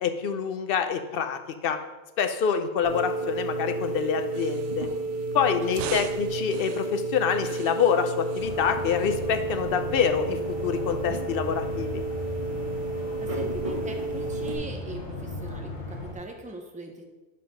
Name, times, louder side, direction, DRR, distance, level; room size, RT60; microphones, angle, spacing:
voice 1, 0.0-1.8 2.2-4.9 5.3-12.0, left 7 dB, 60° left, 7 dB, 0.8 m, -26 dB
sound 1, 2.8-14.6, right 2 dB, 30° right, 1.4 m, -31 dB
sound 2, 3.8-11.4, right 8 dB, 90° right, 0.9 m, -44 dB
sound 3, 8.4-16.1, left 1 dB, 80° left, 1.5 m, -37 dB
voice 2, 13.2-17.0, right 1 dB, 10° right, 2 dB, 0.7 m, -41 dB
5.7 x 5.2 x 5.6 m, 1.1 s
omnidirectional pair, 1.2 m